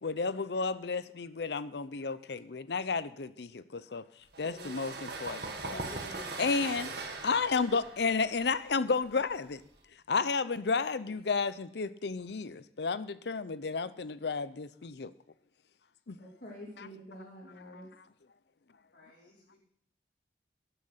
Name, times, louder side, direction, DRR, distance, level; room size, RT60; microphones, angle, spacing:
voice 1, 0.0-4.0 4.4-5.8 6.4-6.9 7.2-9.6 10.1-15.1 16.1-16.2 16.8-16.9 17.6-17.8, left 4 dB, 70° left, 15 dB, 0.6 m, -32 dB
sound 1, 4.3-9.8, right 3 dB, 65° right, 2.0 m, -41 dB
voice 2, 5.7-6.4 16.1-17.9, equal, 50° left, -5 dB, 2.9 m, -47 dB
voice 3, 18.9-19.6, left 2 dB, 85° left, -4 dB, 5.1 m, -61 dB
11.5 x 11.0 x 5.7 m, 0.67 s
head